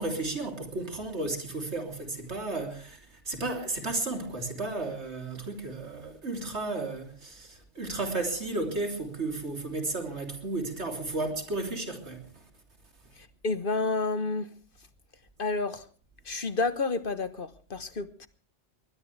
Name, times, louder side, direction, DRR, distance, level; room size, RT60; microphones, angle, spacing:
voice 1, 0.0-3.0 3.3-12.2, right 2 dB, 70° right, 3.6 m, -33 dB
voice 2, 13.4-14.5 15.4-15.8 16.2-18.3, left 3 dB, 50° left, 1.3 m, -30 dB
21.0 x 20.0 x 3.3 m
omnidirectional pair, 1.2 m